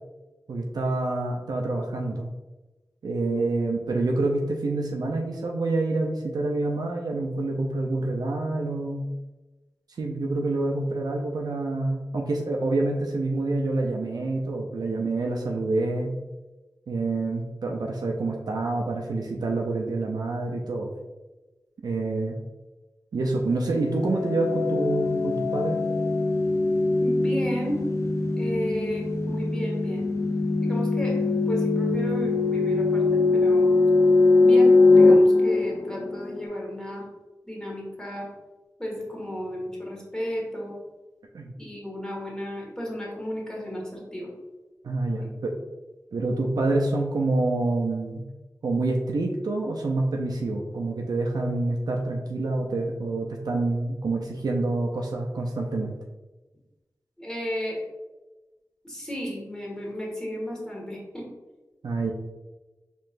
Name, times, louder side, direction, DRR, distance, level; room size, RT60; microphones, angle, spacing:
voice 1, 0.5-2.3 3.0-9.0 10.0-16.1 16.9-20.9 21.8-22.4 23.1-25.8 41.3-41.5 44.8-45.5 46.1-48.2 48.6-55.9 61.8-62.1, right 2 dB, 80° right, 0 dB, 0.4 m, -27 dB
sound 1, 23.7-36.4, left 3 dB, 45° left, 0.5 m, -21 dB
voice 2, 27.0-27.8 28.4-30.1 30.6-33.7 34.4-37.0 37.4-38.3 38.8-40.7 41.6-44.3 45.2-45.3 57.2-57.8 58.8-61.3, equal, 10° left, -3 dB, 1.4 m, -33 dB
4.4 x 3.0 x 2.5 m, 1.1 s
cardioid pair, 50°, 7 cm